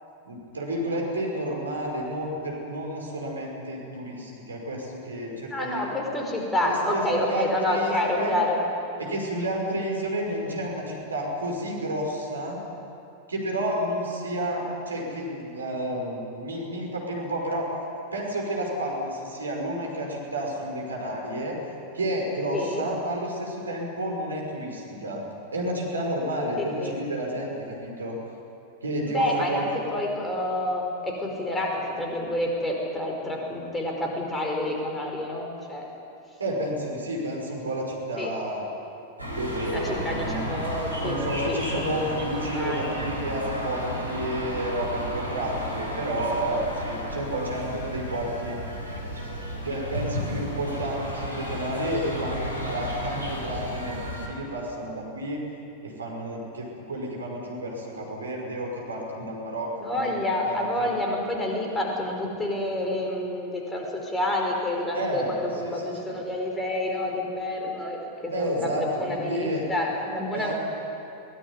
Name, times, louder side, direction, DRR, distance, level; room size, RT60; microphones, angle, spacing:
voice 1, 0.3-5.8 6.6-8.4 9.0-12.6 13.3-17.7 18.1-21.6 21.9-25.2 25.5-28.2 28.8-29.6 36.4-38.6 39.3-40.4 41.0-48.5 49.6-55.4 55.8-60.2 60.4-60.9 64.9-65.7 66.0-66.2 68.3-68.8 69.1-69.6 70.3-70.5, right 1 dB, 75° right, -1 dB, 5.5 m, -31 dB
voice 2, 5.5-8.6 22.5-22.9 26.3-27.0 29.1-35.9 38.2-38.3 39.7-43.0 59.8-70.5, left 1 dB, 10° left, 0 dB, 5.1 m, -28 dB
sound 1, 39.2-54.3, equal, 90° right, 4.5 m, -33 dB
22.5 x 20.5 x 9.8 m, 2.7 s
figure-of-eight pair, 90°, 0 cm